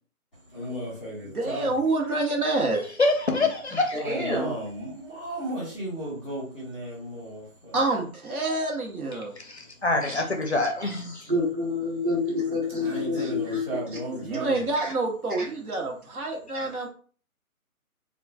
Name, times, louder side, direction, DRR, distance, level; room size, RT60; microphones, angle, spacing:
voice 1, 0.5-1.7 4.0-7.7 12.8-14.6, right 1 dB, 5° left, 0.9 m, -34 dB
voice 2, 1.2-2.8 7.7-9.3 14.2-16.9, right 2 dB, 75° right, 1.1 m, -27 dB
voice 3, 3.0-4.0 9.4-11.3, left 2 dB, 50° left, 0.5 m, -25 dB
voice 4, 3.7-4.5 11.3-13.6 14.1-14.2 14.8-14.9 15.4-15.5 16.5-16.7, left 2 dB, 35° right, 1.0 m, -28 dB
3.6 x 2.3 x 2.3 m
hypercardioid pair, 170°, 44 cm